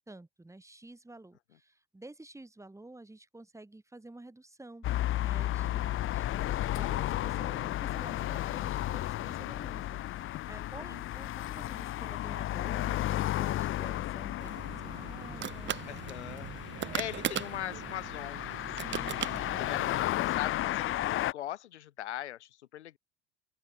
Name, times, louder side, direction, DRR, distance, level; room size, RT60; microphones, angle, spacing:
voice 1, 0.0-16.3 16.8-17.1 18.8-19.7, right 2 dB, 10° right, 4.3 m, -51 dB
sound 1, 4.8-21.3, left 14 dB, 40° left, 0.7 m, -33 dB
voice 2, 10.5-11.1 15.9-16.5 16.9-23.0, left 12 dB, 80° left, 3.0 m, -41 dB
sound 2, 14.4-20.0, right 10 dB, 35° right, 1.1 m, -39 dB
open air
hypercardioid pair, 70°, 34 cm